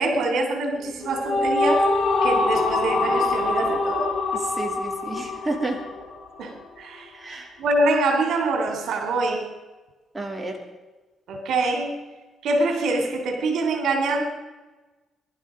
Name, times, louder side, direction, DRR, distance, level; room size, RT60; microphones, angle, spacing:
voice 1, 0.0-1.9 2.2-4.1 6.4-9.5 11.3-11.9 12.4-14.2, right 2 dB, 70° right, 5 dB, 3.3 m, -25 dB
sound 1, 0.9-6.4, left 3 dB, 55° left, 3.9 m, -24 dB
voice 2, 4.3-5.8 7.1-7.5 10.1-10.6, right 2 dB, 15° right, 2 dB, 3.1 m, -31 dB
23.0 x 12.0 x 5.2 m, 1.2 s
cardioid pair, 90°, 0 cm